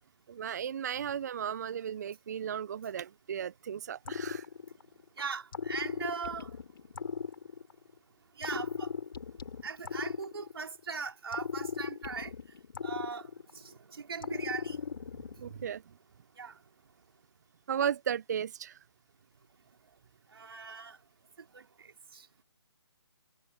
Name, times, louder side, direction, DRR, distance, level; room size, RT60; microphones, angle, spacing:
voice 1, 0.3-4.5 15.4-15.8 17.7-18.8, right 8 dB, 40° right, 0.7 m, -35 dB
sound 1, 4.0-5.0 5.5-7.9 8.4-10.8 11.3-13.7 14.2-15.7, left 6 dB, 50° left, 7.1 m, -38 dB
voice 2, 5.2-6.5 8.4-8.9 9.6-12.3 12.8-15.1 16.4-16.6 20.3-21.0 21.5-22.3, right 5 dB, 60° right, 4.5 m, -40 dB
figure-of-eight pair, 150°, 15 cm